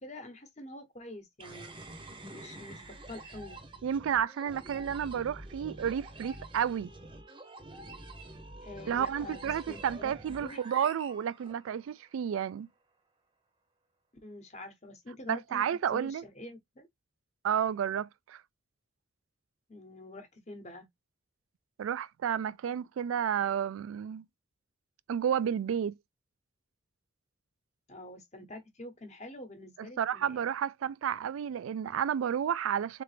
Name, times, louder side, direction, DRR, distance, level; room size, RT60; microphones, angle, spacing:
voice 1, 0.0-1.7 2.3-3.6 8.6-10.6 14.2-16.9 19.7-20.9 27.9-30.5, left 1 dB, 35° left, 1.0 m, -46 dB
sound 1, 1.4-12.0, right 2 dB, 25° right, 0.7 m, -47 dB
voice 2, 3.8-6.9 8.9-12.7 15.3-16.2 17.4-18.4 21.8-24.2 25.1-25.9 30.0-33.0, right 8 dB, 90° right, 0.3 m, -31 dB
3.7 x 3.4 x 3.3 m
head